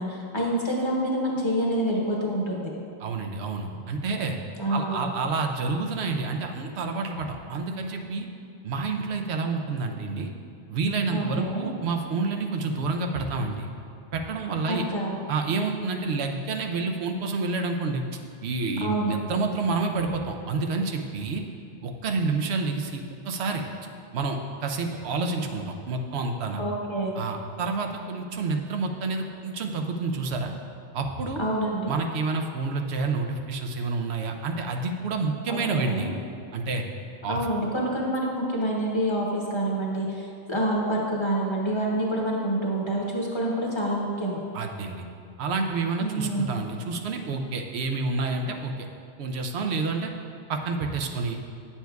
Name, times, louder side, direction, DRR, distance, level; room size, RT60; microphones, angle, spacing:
voice 1, 0.0-2.7 4.6-5.1 11.1-11.7 14.7-15.2 18.8-19.1 26.6-27.2 31.4-31.9 35.5-36.1 37.3-44.4 46.0-46.6, right 1 dB, 30° left, -3 dB, 0.9 m, -27 dB
voice 2, 3.0-4.4 4.7-8.3 8.6-10.3 10.7-13.7 14.1-14.8 15.3-21.4 21.8-23.6 24.1-26.6 27.2-30.5 30.9-31.4 31.9-36.1 36.5-36.8 37.2-37.4 44.5-45.0 45.4-48.9 49.2-50.1 50.5-51.4, right 3 dB, 85° right, 4 dB, 0.9 m, -29 dB
9.2 x 7.1 x 2.3 m, 2.5 s
omnidirectional pair, 1.1 m